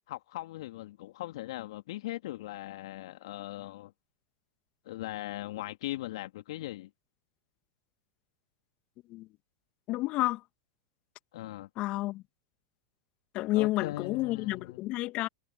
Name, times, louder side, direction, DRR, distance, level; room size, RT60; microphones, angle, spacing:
voice 1, 0.1-3.9 4.8-6.9 11.3-11.7 13.5-14.8, left 16 dB, 65° left, 3.1 m, -39 dB
voice 2, 9.9-10.4 11.8-12.2 13.3-15.3, left 18 dB, 45° left, 2.0 m, -30 dB
hypercardioid pair, 100°, 3 cm